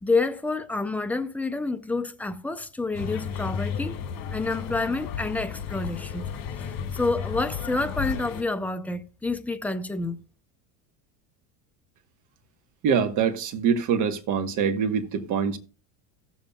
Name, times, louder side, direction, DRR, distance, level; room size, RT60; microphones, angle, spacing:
voice 1, 0.0-4.0 4.3-6.3 6.5-10.2, left 3 dB, 5° left, 0.4 m, -28 dB
sound 1, 2.9-8.4, left 7 dB, 60° left, 2.1 m, -33 dB
voice 2, 12.8-15.6, right 7 dB, 50° right, 1.3 m, -24 dB
16.5 x 7.1 x 2.3 m
supercardioid pair, 130°, 40 cm